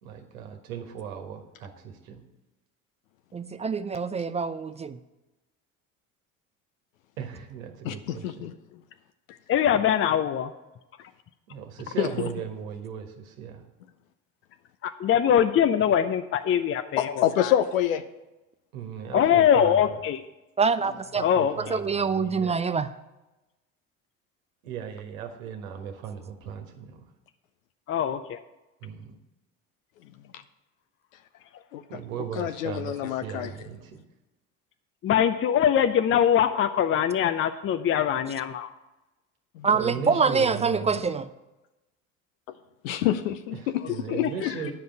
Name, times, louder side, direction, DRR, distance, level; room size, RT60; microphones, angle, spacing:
voice 1, 0.0-2.2 7.2-8.5 11.5-13.7 18.7-20.0 21.1-22.6 24.6-27.1 28.8-29.2 31.9-34.0 39.7-41.0 43.5-44.7, right 8 dB, 75° right, 5 dB, 1.5 m, -37 dB
voice 2, 3.3-5.0 20.6-21.2 21.7-22.9 39.6-41.3, right 5 dB, 15° right, 12 dB, 0.4 m, -25 dB
voice 3, 7.8-8.5 12.0-12.1 17.0-18.0 30.3-30.4 31.7-31.8 32.4-33.5 39.5-39.7 42.8-43.8 44.1-44.5, left 11 dB, 75° left, 10 dB, 0.7 m, -27 dB
voice 4, 9.5-10.5 14.8-17.5 19.1-20.2 21.2-21.8 27.9-28.4 35.0-38.7 44.2-44.5, left 9 dB, 30° left, 10 dB, 0.6 m, -23 dB
9.9 x 5.3 x 7.6 m, 1.0 s
hypercardioid pair, 60°, 41 cm